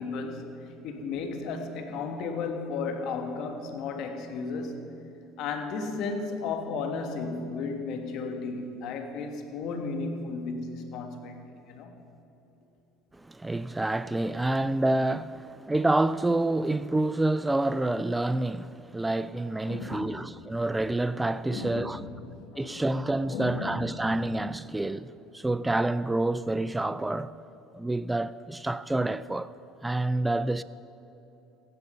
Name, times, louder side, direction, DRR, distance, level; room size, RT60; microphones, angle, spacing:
voice 1, 0.0-4.9 5.4-12.0 19.6-20.2 21.5-22.8 23.3-24.1, left 4 dB, 65° left, 1.6 m, -34 dB
voice 2, 13.1-22.0 22.6-27.3 27.7-29.5 29.8-30.6, right 2 dB, 10° right, 0.4 m, -28 dB
15.0 x 11.0 x 5.5 m
supercardioid pair, 105°, 0 cm